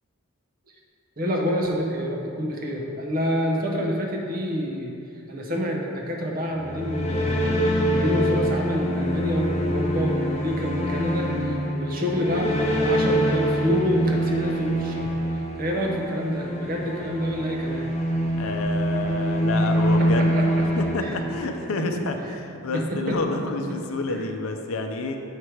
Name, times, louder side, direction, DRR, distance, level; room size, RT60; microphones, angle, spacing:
voice 1, 1.2-17.9 19.9-21.2 21.6-22.3 22.7-23.4 23.7-23.8 24.1-24.3, equal, 40° right, -1 dB, 0.8 m, -28 dB
sound 1, 6.5-21.7, equal, 30° left, 0.6 m, -25 dB
voice 2, 18.4-20.3 20.8-22.2 22.5-25.2, left 3 dB, 75° left, 4 dB, 0.6 m, -29 dB
6.5 x 5.0 x 4.5 m, 2.6 s
head